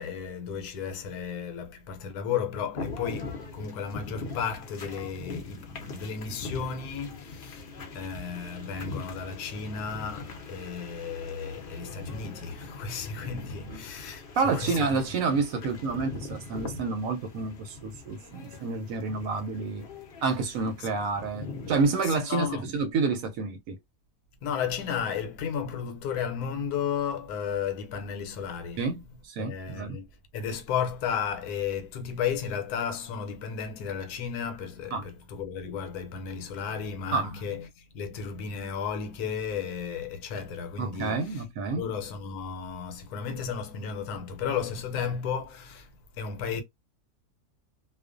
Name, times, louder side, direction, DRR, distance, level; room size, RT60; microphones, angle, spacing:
voice 1, 0.0-15.0 20.8-20.9 22.0-22.7 24.4-28.8 29.4-30.1 30.3-41.4 41.7-46.6, left 7 dB, 80° left, 1.1 m, -34 dB
sound 1, 2.7-21.9, left 3 dB, 55° left, 0.7 m, -42 dB
voice 2, 14.4-19.9 20.2-23.8 28.8-30.0 34.9-35.0 37.1-37.3 40.8-41.8, right 4 dB, 70° right, 0.9 m, -29 dB
2.4 x 2.3 x 2.4 m
omnidirectional pair, 1.6 m